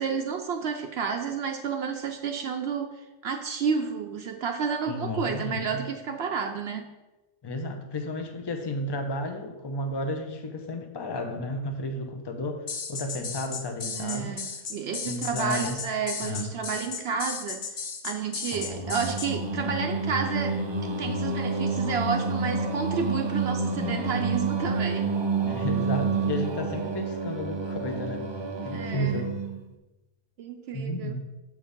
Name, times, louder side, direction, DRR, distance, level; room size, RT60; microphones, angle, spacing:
voice 1, 0.0-6.9 13.8-25.1 28.7-29.3 30.4-31.2, right 6 dB, 70° right, 5 dB, 0.8 m, -31 dB
voice 2, 4.9-5.8 7.4-14.4 15.0-15.8 16.2-16.5 25.4-28.3 28.6-29.4 30.7-31.2, left 1 dB, 25° left, 5 dB, 0.7 m, -32 dB
sound 1, 12.7-19.3, left 5 dB, 55° left, 0.9 m, -35 dB
Singing, 18.5-29.7, right 4 dB, 40° right, 0.4 m, -29 dB
6.9 x 4.8 x 5.1 m, 1.1 s
omnidirectional pair, 1.2 m